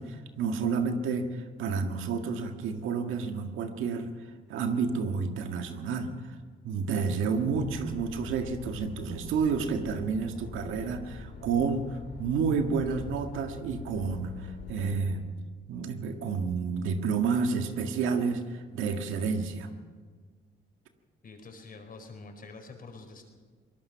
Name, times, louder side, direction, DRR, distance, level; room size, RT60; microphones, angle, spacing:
voice 1, 0.0-4.1 4.5-6.3 6.6-15.2 15.7-19.7, right 5 dB, 90° right, 5 dB, 1.8 m, -30 dB
sound 1, 7.5-15.2, left 4 dB, 60° left, 2.7 m, -44 dB
voice 2, 21.2-23.2, left 3 dB, 45° left, 5 dB, 4.6 m, -46 dB
23.0 x 19.5 x 5.8 m, 1.5 s
cardioid pair, 90°, 20 cm